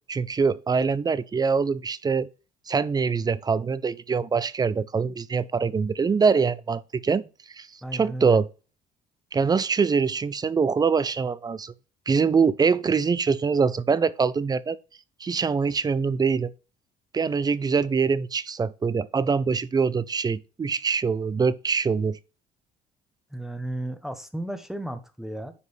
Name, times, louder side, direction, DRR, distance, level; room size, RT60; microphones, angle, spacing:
voice 1, 0.1-2.3 2.7-7.2 7.6-7.7 7.9-8.5 9.3-11.7 12.1-14.8 15.2-16.5 17.1-22.2, right 5 dB, 25° right, 0.5 m, -24 dB
voice 2, 7.8-8.4 23.3-25.5, right 1 dB, ahead, 1.0 m, -34 dB
9.6 x 5.2 x 3.3 m
cardioid pair, 110°, 17 cm